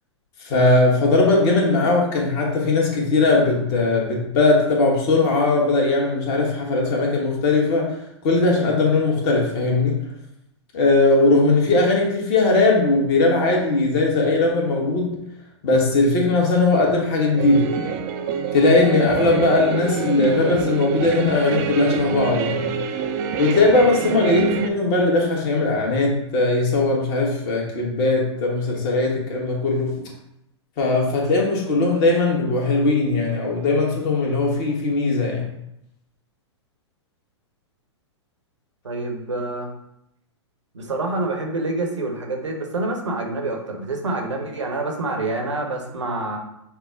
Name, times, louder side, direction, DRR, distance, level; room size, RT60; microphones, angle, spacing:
voice 1, 0.4-8.0 8.2-10.0 10.7-15.1 15.6-17.7 18.5-22.7 23.4-29.9 30.8-35.5, left 2 dB, 40° left, -1 dB, 1.3 m, -19 dB
sound 1, 17.4-24.7, right 7 dB, 40° right, 0.4 m, -26 dB
voice 2, 38.8-39.7 40.7-46.4, right 2 dB, 80° right, 2 dB, 0.9 m, -27 dB
5.7 x 2.1 x 3.6 m, 0.80 s
figure-of-eight pair, 110°, 15 cm